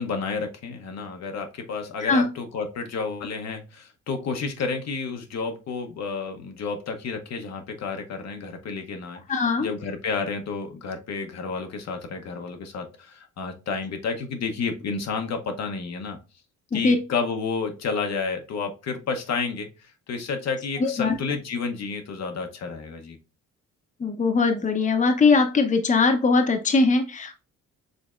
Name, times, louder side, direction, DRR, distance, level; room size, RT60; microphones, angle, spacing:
voice 1, 0.0-9.2 9.6-16.2 16.7-19.7 20.1-23.2, left 5 dB, 60° left, 5 dB, 0.9 m, -30 dB
voice 2, 9.3-9.7 16.7-17.0 20.8-21.1 24.0-27.3, left 4 dB, 25° left, 5 dB, 0.7 m, -21 dB
5.1 x 3.4 x 2.4 m, 0.31 s
cardioid pair, 90°, 30 cm